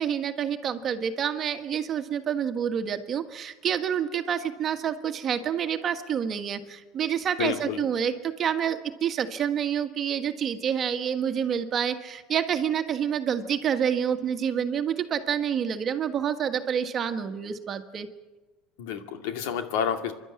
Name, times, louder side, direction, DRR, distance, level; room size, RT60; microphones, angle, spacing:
voice 1, 0.0-18.1, right 8 dB, 30° right, 8 dB, 1.5 m, -28 dB
voice 2, 7.4-7.8 18.8-20.1, left 8 dB, 80° left, 6 dB, 2.3 m, -29 dB
27.5 x 12.0 x 9.8 m, 1.2 s
cardioid pair, 145°, 0 cm